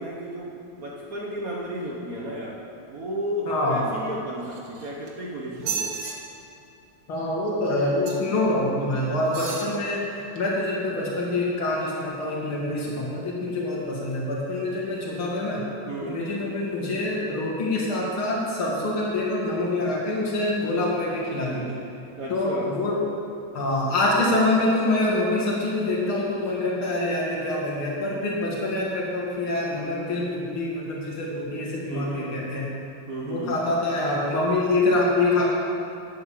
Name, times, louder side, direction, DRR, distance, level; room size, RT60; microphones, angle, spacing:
voice 1, 0.0-2.6 2.9-5.9 15.8-16.2 22.2-22.7 31.9-32.4 33.1-33.6, right 1 dB, 50° right, -3 dB, 1.5 m, -33 dB
voice 2, 3.5-3.9 7.1-15.6 16.0-21.8 22.3-23.0 23.5-32.6 33.2-35.4, left 2 dB, 75° left, -4 dB, 3.1 m, -25 dB
sound 1, 4.4-5.1 5.5-6.1 8.0-8.4 9.2-9.7 10.4-10.5, right 6 dB, 90° right, 2.3 m, -33 dB
11.5 x 8.6 x 7.5 m, 2.7 s
omnidirectional pair, 2.3 m